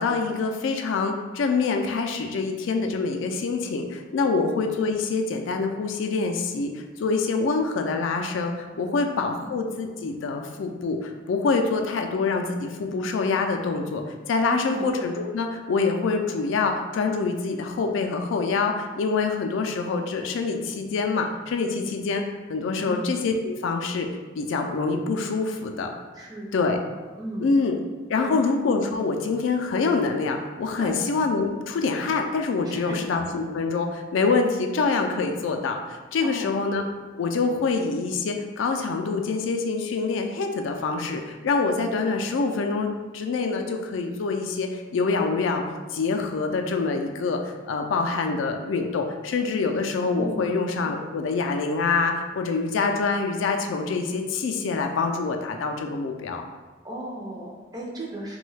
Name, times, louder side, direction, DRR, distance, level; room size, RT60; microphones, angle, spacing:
voice 1, 0.0-22.2 22.5-24.1 24.4-25.9 26.5-26.8 27.4-27.7 28.1-36.8 37.2-45.6 45.9-56.4, left 4 dB, 75° left, 4 dB, 0.3 m, -25 dB
voice 2, 8.9-9.5 14.4-14.9 22.8-23.1 26.1-26.8 27.2-27.5 28.1-28.4 30.8-31.0 32.6-33.0 36.2-36.5 50.2-50.5 56.8-58.4, right 1 dB, 20° right, -3 dB, 0.4 m, -36 dB
3.1 x 2.2 x 3.2 m, 1.3 s
head